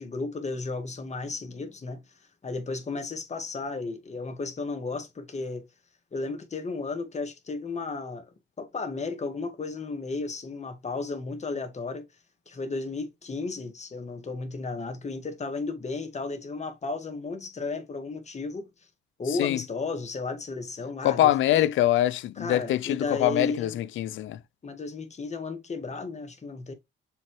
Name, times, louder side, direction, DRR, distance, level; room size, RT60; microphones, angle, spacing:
voice 1, 0.0-2.0 2.4-5.6 6.1-8.3 8.6-12.0 12.5-18.7 19.2-21.7 22.4-23.8 24.6-26.7, left 3 dB, 35° left, 2.0 m, -34 dB
voice 2, 21.0-24.4, left 13 dB, 75° left, 0.6 m, -24 dB
7.0 x 4.2 x 3.3 m
cardioid pair, 90°, 20 cm